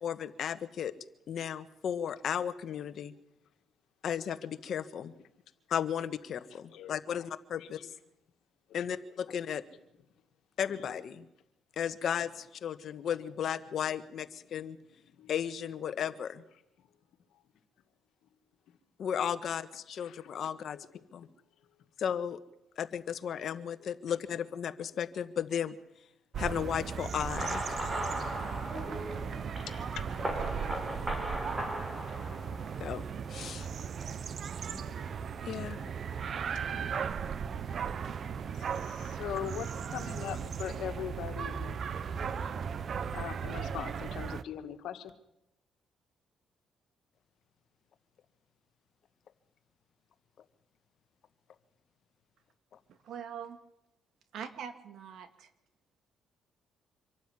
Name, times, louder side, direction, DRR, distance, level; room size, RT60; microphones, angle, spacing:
voice 1, 0.0-0.9 1.3-3.1 4.0-5.1 5.7-7.9 8.7-9.6 10.6-11.2 11.8-14.8 15.3-16.4 19.0-20.8 21.1-21.3 22.0-22.4 22.8-25.7 26.4-27.6 32.8-33.0 33.3-33.7 35.4-35.8, left 8 dB, 65° left, 11 dB, 1.4 m, -34 dB
voice 2, 6.7-7.2 7.6-7.7 15.2-15.3 20.0-20.2 20.7-20.8 30.0-30.1 30.6-31.3 34.7-34.9 35.8-35.9 36.7-36.9 38.8-41.8 43.1-45.1, left 10 dB, 80° left, 7 dB, 2.1 m, -41 dB
sound 1, 26.3-44.4, right 7 dB, 55° right, 0.9 m, -37 dB
sound 2, 27.2-33.0, right 1 dB, 20° right, 4.5 m, -37 dB
voice 3, 53.0-53.6 54.3-55.5, right 8 dB, 70° right, 9 dB, 2.2 m, -42 dB
25.5 x 12.5 x 9.9 m, 0.85 s
cardioid pair, 90°, 0 cm